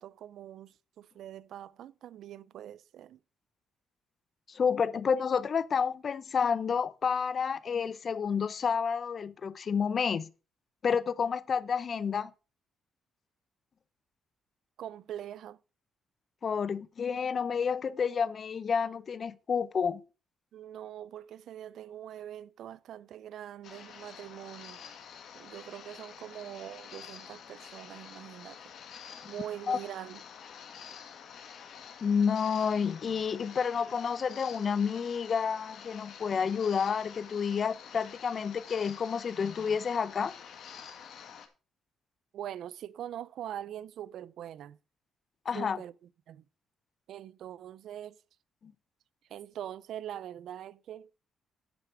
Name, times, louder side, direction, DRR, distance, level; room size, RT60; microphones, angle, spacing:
voice 1, 0.0-3.2 14.8-15.6 20.5-24.9 25.3-28.6 29.3-30.2 42.3-44.8 45.5-45.9 46.3-46.4 47.1-48.2 49.3-51.1, right 11 dB, 75° right, 0.5 m, -43 dB
voice 2, 4.5-10.3 10.8-12.3 16.4-20.0 29.2-29.3 29.7-29.8 32.0-40.4 45.5-45.8 48.6-48.7, left 6 dB, 45° left, 0.7 m, -30 dB
sound 1, 23.6-41.5, left 7 dB, 70° left, 2.1 m, -48 dB
10.5 x 7.6 x 4.8 m
cardioid pair, 90°, 0 cm